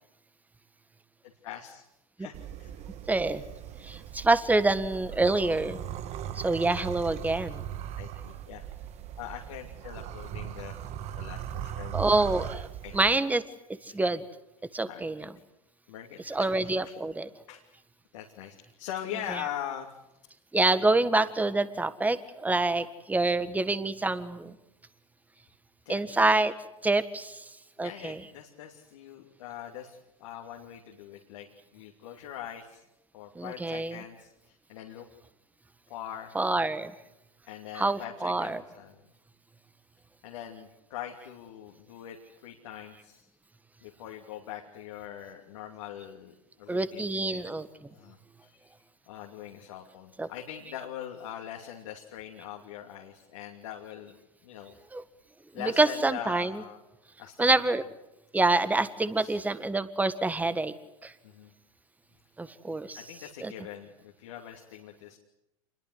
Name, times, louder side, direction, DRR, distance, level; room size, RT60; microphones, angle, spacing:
voice 1, 1.4-1.8 2.2-2.8 8.0-8.6 9.2-10.7 11.2-12.0 12.8-13.0 13.9-14.0 14.9-15.1 15.9-17.0 17.5-17.6 18.1-19.9 25.8-26.0 27.8-31.5 31.7-32.8 33.1-35.1 35.9-36.3 37.5-39.0 40.2-43.3 43.8-47.4 47.9-48.7 49.1-54.8 55.5-56.8 57.2-57.9 59.1-59.6 61.2-61.5 62.9-65.2, left 10 dB, 65° left, 1 dB, 2.8 m, -42 dB
sound 1, 2.3-13.2, right 11 dB, 40° right, 1.4 m, -39 dB
voice 2, 3.1-3.4 3.8-5.8 6.3-7.6 11.9-12.7 12.9-13.4 13.8-14.2 14.7-15.3 16.3-17.3 20.5-24.5 25.9-26.5 26.8-27.4 27.8-28.2 33.3-34.0 36.3-36.9 37.7-38.6 46.7-47.7 50.2-50.3 54.9-55.0 55.5-56.6 57.4-57.8 58.3-60.7 61.0-61.1 62.4-63.0 63.4-63.5, right 2 dB, 10° right, 13 dB, 1.6 m, -26 dB
27.5 x 21.5 x 8.1 m, 0.90 s
figure-of-eight pair, 90°, 18 cm